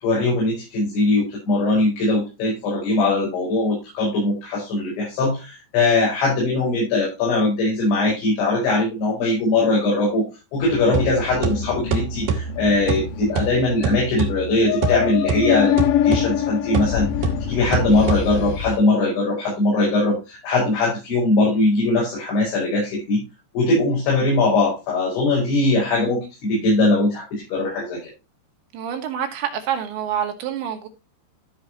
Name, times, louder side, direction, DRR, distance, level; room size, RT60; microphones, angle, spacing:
voice 1, 0.0-10.2 10.5-17.1 17.5-23.2 23.5-28.0, left 2 dB, 85° left, 7.8 m, -21 dB
sound 1, 10.6-18.8, left 11 dB, 65° left, 2.3 m, -25 dB
sound 2, 10.9-18.7, right 5 dB, 60° right, 3.3 m, -27 dB
voice 2, 28.7-30.9, right 9 dB, 80° right, 4.3 m, -27 dB
15.5 x 7.1 x 2.9 m
omnidirectional pair, 5.1 m